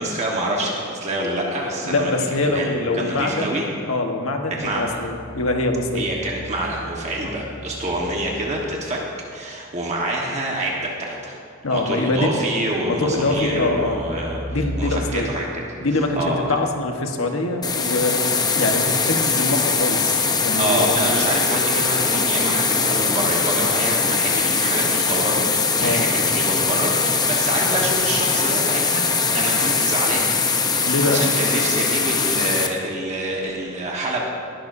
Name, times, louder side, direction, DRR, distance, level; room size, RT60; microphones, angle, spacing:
voice 1, 0.0-3.7 4.5-5.0 5.9-9.0 9.3-11.4 11.7-14.4 14.8-15.6 15.9-16.5 20.6-25.5 25.7-29.1 29.3-30.3 30.8-34.2, right 1 dB, 35° right, -2 dB, 1.3 m, -26 dB
voice 2, 1.8-3.6 3.9-6.1 7.2-7.3 11.6-12.3 12.9-14.0 14.5-15.3 15.8-21.0 25.8-26.1 30.8-31.3, left 2 dB, 85° left, 3 dB, 1.3 m, -24 dB
sound 1, 4.6-9.2 12.6-17.2 19.3-19.4, equal, 5° right, 0.3 m, -37 dB
sound 2, 17.6-32.7, left 4 dB, 20° left, 0.7 m, -21 dB
20.5 x 11.5 x 2.7 m, 2.3 s
head